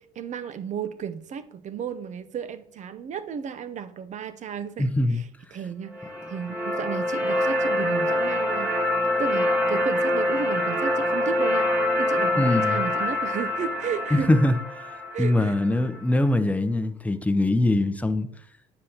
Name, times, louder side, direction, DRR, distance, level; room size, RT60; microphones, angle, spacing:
voice 1, 0.0-11.7 12.0-14.4 15.1-15.6, right 7 dB, 45° right, 0.7 m, -34 dB
voice 2, 4.8-5.2 12.4-12.8 14.1-14.5 15.2-18.3, left 1 dB, 10° left, 0.7 m, -22 dB
sound 1, 5.9-16.0, left 1 dB, 10° right, 1.8 m, -25 dB
9.5 x 7.0 x 2.9 m
supercardioid pair, 75°, 17 cm